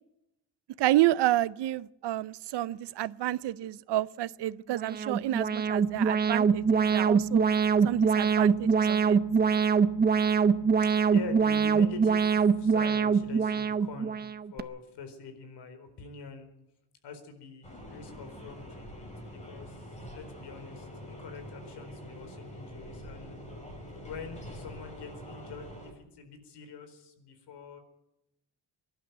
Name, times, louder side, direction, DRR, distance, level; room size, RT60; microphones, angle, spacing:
voice 1, 0.8-7.5 7.8-9.2, right 15 dB, 80° right, 0.7 m, -29 dB
Alarm, 4.7-14.6, right 6 dB, 25° right, 0.6 m, -24 dB
voice 2, 11.1-14.2 14.5-16.5 17.0-19.8 20.1-23.4 24.0-27.8, left 4 dB, 75° left, 4.4 m, -44 dB
sound 1, 17.6-25.9, equal, 15° left, 5.0 m, -45 dB
24.0 x 11.5 x 9.2 m
cardioid pair, 170°, 41 cm